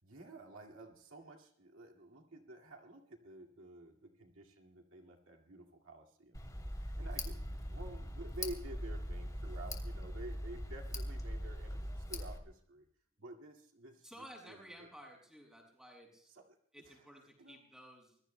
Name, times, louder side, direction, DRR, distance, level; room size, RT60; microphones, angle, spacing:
voice 1, 0.0-6.4 6.8-12.9 13.2-14.9 16.3-16.6 16.8-17.1 17.4-17.6, right 1 dB, 70° right, 1 dB, 2.1 m, -51 dB
Tick, 6.3-12.4, equal, 15° left, 2.8 m, -41 dB
voice 2, 14.0-16.3 16.7-18.2, equal, 5° right, -1 dB, 7.0 m, -54 dB
26.0 x 21.5 x 2.2 m, 0.64 s
head